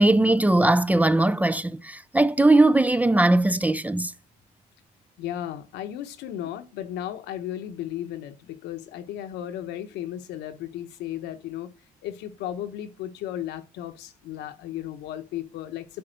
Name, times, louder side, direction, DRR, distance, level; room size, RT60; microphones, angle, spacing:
voice 1, 0.0-4.1, right 2 dB, 10° right, 0.4 m, -20 dB
voice 2, 5.2-11.7 12.0-16.0, left 11 dB, 85° left, 1.1 m, -35 dB
10.5 x 3.6 x 6.6 m
cardioid pair, 110°, 17 cm